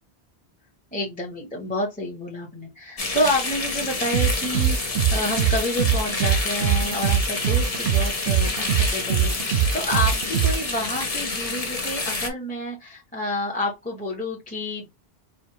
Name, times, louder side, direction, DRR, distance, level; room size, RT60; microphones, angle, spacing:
voice 1, 0.9-14.9, left 1 dB, 10° left, -3 dB, 0.8 m, -29 dB
sound 1, 3.0-12.3, left 3 dB, 35° left, 0.9 m, -28 dB
sound 2, 4.1-10.6, right 8 dB, 70° right, 0.8 m, -22 dB
4.4 x 2.4 x 2.8 m, 0.21 s
omnidirectional pair, 1.1 m